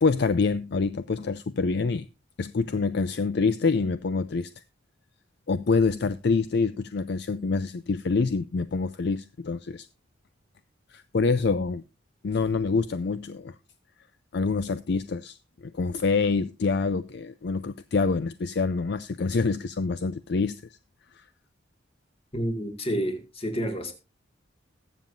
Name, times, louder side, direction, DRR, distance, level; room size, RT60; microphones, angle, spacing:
voice 1, 0.0-2.0 2.4-4.5 5.5-9.9 10.9-11.8 12.2-13.5 14.3-20.8 21.1-21.3, left 4 dB, 55° left, 0.4 m, -26 dB
voice 2, 22.3-23.9, equal, 30° left, 2.0 m, -29 dB
21.0 x 7.2 x 2.5 m
head